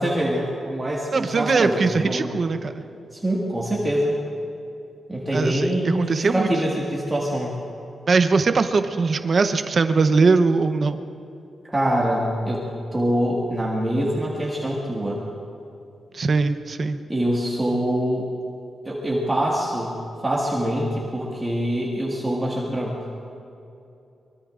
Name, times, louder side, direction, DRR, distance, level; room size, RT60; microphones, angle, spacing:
voice 1, 0.0-2.3 3.1-4.1 5.1-7.5 11.6-12.6 12.9-15.2 17.1-18.3 18.9-20.0 20.2-23.0, equal, 15° right, -5 dB, 1.9 m, -24 dB
voice 2, 1.1-2.7 5.3-6.5 8.1-11.0 16.1-17.0, right 4 dB, 40° right, 8 dB, 0.8 m, -21 dB
24.5 x 23.0 x 2.5 m, 2.7 s
wide cardioid pair, 155°, 0 cm